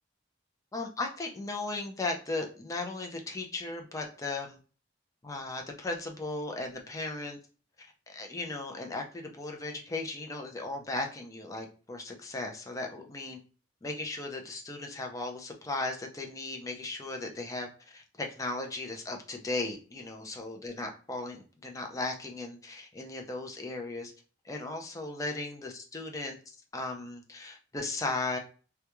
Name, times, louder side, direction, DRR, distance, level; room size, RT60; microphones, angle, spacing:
voice 1, 0.7-4.6 5.2-7.4 7.8-13.4 13.8-24.1 24.4-26.4 26.7-28.4, left 2 dB, 15° left, 3 dB, 0.4 m, -36 dB
2.2 x 2.2 x 2.9 m, 0.37 s
head